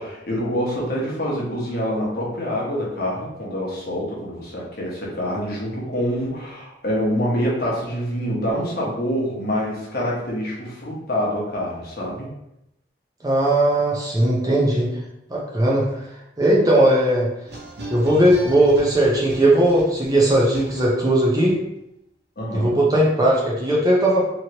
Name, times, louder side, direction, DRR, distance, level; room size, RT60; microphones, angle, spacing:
voice 1, 0.0-12.3 22.4-22.8, equal, 50° left, -4 dB, 0.9 m, -26 dB
voice 2, 13.2-14.9 15.3-16.0 16.4-17.3 17.9-21.6 22.5-24.2, right 1 dB, 20° right, -4 dB, 0.5 m, -18 dB
sound 1, 17.5-21.2, right 1 dB, 60° right, 0.8 m, -36 dB
3.0 x 2.8 x 2.8 m, 0.84 s
head